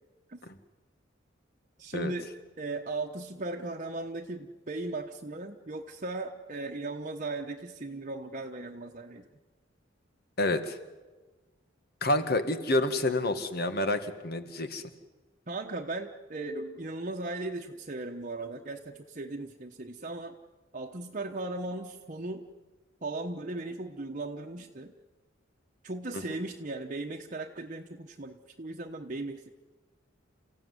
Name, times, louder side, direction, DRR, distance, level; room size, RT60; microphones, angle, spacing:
voice 1, 1.8-2.3 2.6-9.3 15.5-20.3 20.7-22.5 23.0-24.9 25.8-29.5, right 2 dB, 40° right, 2 dB, 1.1 m, -37 dB
voice 2, 10.4-10.8 12.0-14.8, left 2 dB, 55° left, 9 dB, 1.9 m, -28 dB
29.0 x 15.5 x 9.7 m, 1.2 s
head